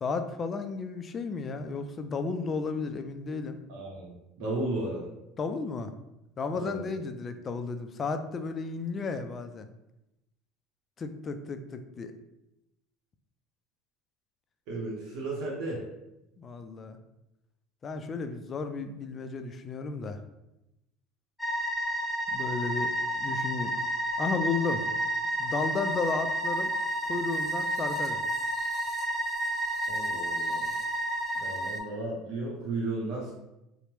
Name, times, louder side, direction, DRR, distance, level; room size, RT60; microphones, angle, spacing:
voice 1, 0.0-3.6 5.4-5.9 6.4-9.7 11.0-12.1 16.4-17.0 17.8-20.2 22.3-22.9 23.2-23.7 24.2-24.8 25.4-26.7 27.1-28.2, left 4 dB, 35° left, 8 dB, 0.3 m, -33 dB
voice 2, 3.7-5.1 6.5-6.9 14.7-15.8 29.9-30.7 31.3-33.3, right 2 dB, 70° right, -4 dB, 0.6 m, -34 dB
sound 1, 21.4-31.8, right 1 dB, 5° left, 0.7 m, -30 dB
2.8 x 2.0 x 3.0 m, 0.91 s
supercardioid pair, 90°, 0 cm